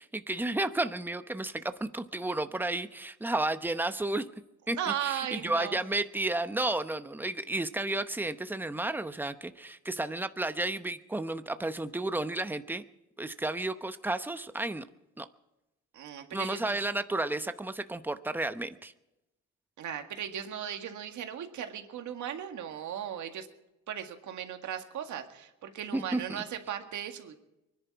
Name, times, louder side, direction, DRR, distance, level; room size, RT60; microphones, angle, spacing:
voice 1, 0.0-4.2 4.7-12.8 13.2-14.8 15.2-15.3 16.3-18.9 25.9-26.4, right 2 dB, 5° right, 10 dB, 0.8 m, -32 dB
voice 2, 4.8-5.8 15.9-16.8 19.8-23.5 23.9-27.3, right 9 dB, 75° right, 5 dB, 1.9 m, -37 dB
23.5 x 10.5 x 4.7 m, 0.93 s
cardioid pair, 90°, 30 cm